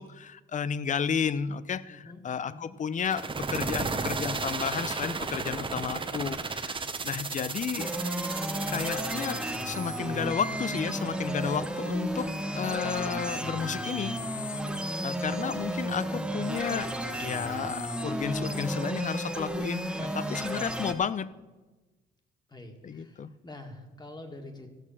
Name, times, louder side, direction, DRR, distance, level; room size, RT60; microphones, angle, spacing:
voice 1, 0.0-7.9 8.7-14.6 15.0-16.9 17.2-21.3 22.8-23.3, left 7 dB, 40° left, 18 dB, 0.6 m, -32 dB
voice 2, 1.9-2.7 7.3-7.8 22.5-24.7, left 2 dB, 20° left, 5 dB, 2.0 m, -47 dB
sound 1, 3.0-9.8, right 4 dB, 25° right, 0.9 m, -34 dB
sound 2, 7.8-20.9, right 1 dB, 5° right, 1.1 m, -33 dB
14.5 x 6.4 x 7.2 m, 1.2 s
cardioid pair, 90°, 20 cm